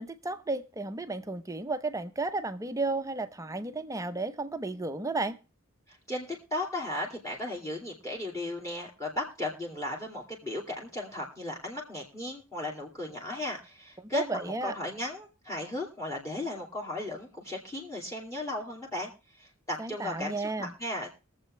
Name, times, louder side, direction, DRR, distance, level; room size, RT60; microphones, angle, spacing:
voice 1, 0.0-5.4 14.0-14.7 19.8-20.7, right 3 dB, 15° right, 0.7 m, -33 dB
voice 2, 5.9-19.1 19.4-21.2, left 1 dB, 15° left, 2.5 m, -36 dB
22.5 x 7.6 x 3.2 m
head